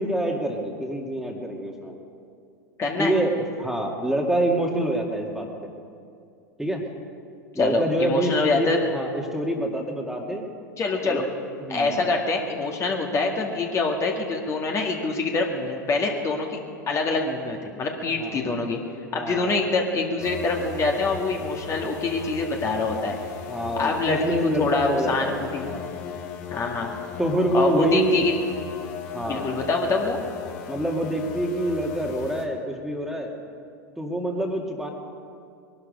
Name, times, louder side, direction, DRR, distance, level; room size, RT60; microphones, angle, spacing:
voice 1, 0.0-2.0 3.0-5.7 6.6-6.8 7.5-10.5 11.0-11.2 11.6-11.9 18.2-18.5 19.1-19.7 23.5-25.9 27.2-28.3 29.1-29.6 30.7-33.3 34.0-34.9, right 1 dB, 5° right, 1 dB, 2.1 m, -26 dB
voice 2, 2.8-3.2 7.6-8.9 10.8-11.2 11.7-16.6 16.9-18.8 19.1-23.2 23.8-25.7 26.5-27.0 27.5-28.4 29.2-30.2, left 3 dB, 30° left, 1 dB, 1.9 m, -25 dB
sound 1, 20.2-32.5, left 8 dB, 55° left, 1.8 m, -37 dB
21.0 x 12.0 x 5.3 m, 2.4 s
hypercardioid pair, 95°, 10 cm